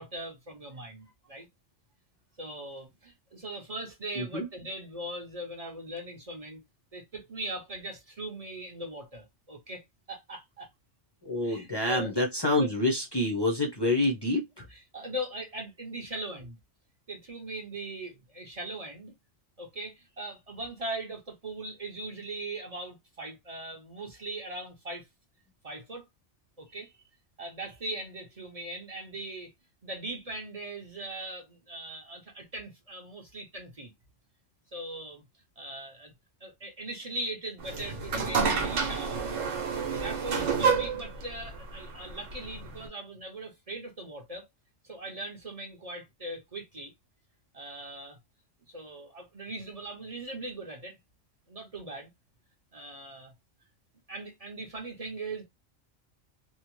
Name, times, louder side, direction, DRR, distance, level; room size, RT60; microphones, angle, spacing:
voice 1, 0.0-1.5 2.4-6.6 6.9-9.8 10.1-10.7 11.4-12.1 12.6-12.7 14.7-16.6 17.1-19.1 19.6-25.1 25.6-26.1 26.6-26.9 27.4-29.5 29.8-33.9 34.7-35.2 35.6-36.1 36.4-39.4 39.9-44.5 44.8-46.9 47.5-48.2 48.7-50.9 51.5-52.1 52.7-53.3 54.1-55.4, right 1 dB, 35° right, 0.7 m, -40 dB
voice 2, 4.1-4.5 11.2-14.7, left 1 dB, 35° left, 0.4 m, -27 dB
sound 1, 37.6-42.9, right 5 dB, 75° right, 1.0 m, -29 dB
2.8 x 2.1 x 3.0 m
omnidirectional pair, 1.3 m